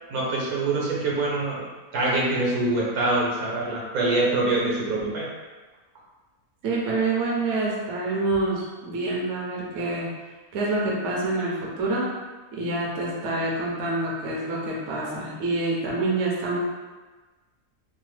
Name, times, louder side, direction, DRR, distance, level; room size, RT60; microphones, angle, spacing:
voice 1, 0.1-1.7 1.9-5.3, right 2 dB, 80° right, -4 dB, 1.3 m, -24 dB
voice 2, 6.6-10.1 10.5-12.1 12.5-16.6, right 2 dB, 65° right, -4 dB, 0.8 m, -27 dB
2.9 x 2.0 x 3.1 m, 1.3 s
omnidirectional pair, 1.6 m